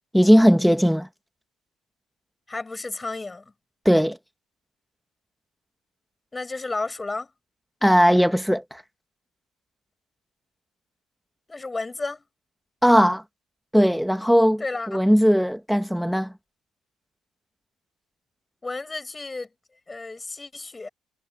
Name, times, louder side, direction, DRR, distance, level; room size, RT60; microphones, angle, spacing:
voice 1, 0.1-1.1 3.9-4.2 7.8-8.8 12.8-13.2 13.7-14.6 14.9-16.3, equal, ahead, 1.9 m, -18 dB
voice 2, 2.5-3.5 6.3-7.3 11.5-12.3 14.6-15.0 18.6-19.5 19.9-20.9, left 3 dB, 20° left, 7.6 m, -32 dB
supercardioid pair, 65°, 0 cm